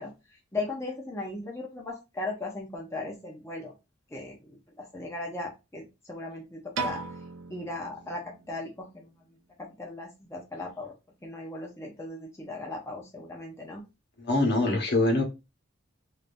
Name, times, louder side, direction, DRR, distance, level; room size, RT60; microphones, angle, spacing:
voice 1, 0.0-3.8 4.1-7.0 7.5-9.1 9.6-10.9 11.2-13.8, left 2 dB, 15° left, -1 dB, 0.6 m, -37 dB
Piano, 6.7-9.0, right 4 dB, 70° right, 0.5 m, -38 dB
voice 2, 14.2-15.2, left 2 dB, 60° left, 1 dB, 1.1 m, -24 dB
3.4 x 2.7 x 2.6 m, 0.25 s
head